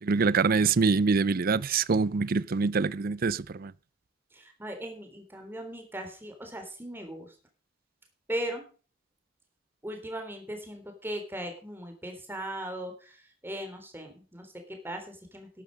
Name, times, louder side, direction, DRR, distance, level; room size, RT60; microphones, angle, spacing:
voice 1, 0.0-3.7, right 4 dB, 50° right, 0.5 m, -25 dB
voice 2, 4.3-7.4 8.3-8.7 9.8-15.6, right 1 dB, 10° right, 3.6 m, -38 dB
12.5 x 11.0 x 5.3 m
head